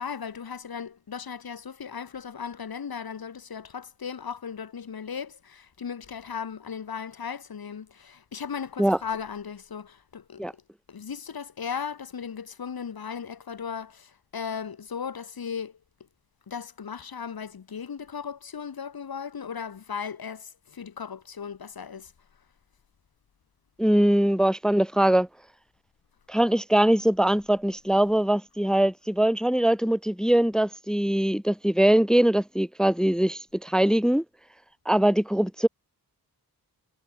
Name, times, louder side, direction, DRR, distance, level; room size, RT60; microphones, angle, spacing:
voice 1, 0.0-10.6 10.9-15.8 16.5-22.1, left 6 dB, 65° left, 3.2 m, -36 dB
voice 2, 23.8-25.3 26.3-34.2 34.9-35.7, right 1 dB, ahead, 0.6 m, -22 dB
wide cardioid pair, 140°, 39 cm